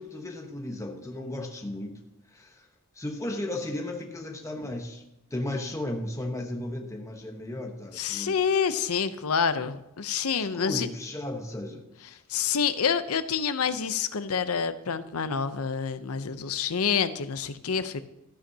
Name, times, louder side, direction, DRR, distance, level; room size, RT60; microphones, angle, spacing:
voice 1, 0.0-2.0 2.3-2.7 2.9-5.0 5.3-8.3 10.3-12.2, left 1 dB, 15° left, 2 dB, 1.0 m, -35 dB
voice 2, 7.9-10.9 12.3-18.0, left 6 dB, 80° left, 12 dB, 0.7 m, -27 dB
14.0 x 11.5 x 2.8 m, 0.88 s
head